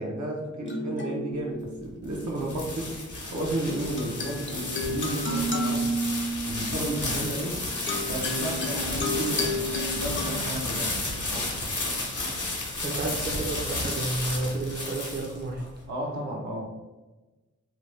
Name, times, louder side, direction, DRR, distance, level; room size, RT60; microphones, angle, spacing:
voice 1, 0.0-2.9 3.3-5.9 6.5-7.6 8.1-11.5 15.9-16.6, right 1 dB, 70° right, -1 dB, 0.7 m, -33 dB
sound 1, 0.6-2.4 3.8-12.3, equal, 40° left, 0.5 m, -33 dB
sound 2, 1.8-15.6, left 2 dB, 80° left, 0.8 m, -32 dB
voice 2, 12.8-15.6, right 2 dB, 35° right, -1 dB, 0.5 m, -31 dB
2.7 x 2.2 x 3.1 m, 1.2 s
wide cardioid pair, 65°, 30 cm